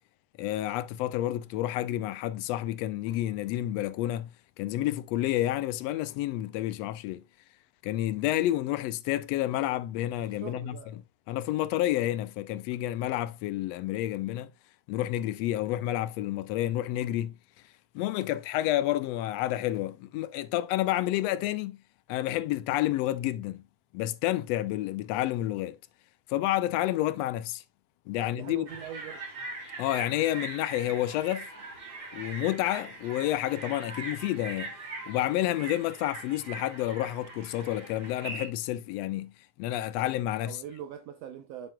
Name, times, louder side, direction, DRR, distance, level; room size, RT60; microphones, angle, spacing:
voice 1, 0.4-4.3 4.6-7.2 7.8-14.5 14.9-17.4 17.9-21.8 22.1-23.6 23.9-25.8 26.3-27.6 28.1-28.7 29.8-31.5 32.1-34.7 35.1-39.3 39.6-40.6, left 14 dB, 80° left, 1.6 m, -30 dB
voice 2, 10.4-10.9 28.2-29.2 40.4-41.7, right 9 dB, 75° right, 1.6 m, -42 dB
sound 1, 28.7-38.5, right 2 dB, 40° right, 3.5 m, -41 dB
7.5 x 7.4 x 2.3 m
omnidirectional pair, 3.3 m